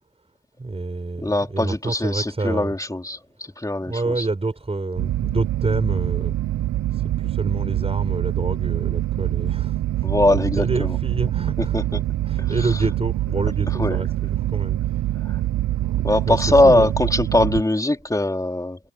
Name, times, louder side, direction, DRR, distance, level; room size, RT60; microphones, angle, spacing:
voice 1, 0.6-2.7 3.9-6.3 6.9-9.8 10.6-12.0 12.2-14.8 15.8-16.0 16.2-17.0, right 3 dB, 20° right, 5.8 m, -28 dB
voice 2, 1.2-3.2 3.6-4.3 10.0-11.0 11.6-12.0 12.4-12.8 13.7-14.0 15.2-15.4 16.0-18.8, left 1 dB, 10° left, 3.9 m, -21 dB
sound 1, 5.0-17.6, right 14 dB, 65° right, 0.8 m, -24 dB
cardioid pair, 90°, 30 cm